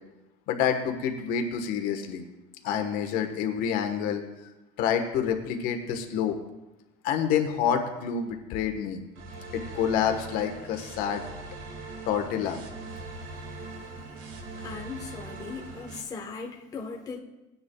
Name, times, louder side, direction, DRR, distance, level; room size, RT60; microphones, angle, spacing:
voice 1, 0.5-2.3 2.6-4.2 4.8-6.3 7.0-9.0 9.5-11.2 12.1-12.6, left 8 dB, 65° left, 5 dB, 1.3 m, -28 dB
sound 1, 9.2-16.0, right 3 dB, 90° right, 2.0 m, -41 dB
voice 2, 14.6-17.2, left 4 dB, 20° left, 1 dB, 1.1 m, -38 dB
18.5 x 9.5 x 2.3 m, 0.99 s
cardioid pair, 160°, 17 cm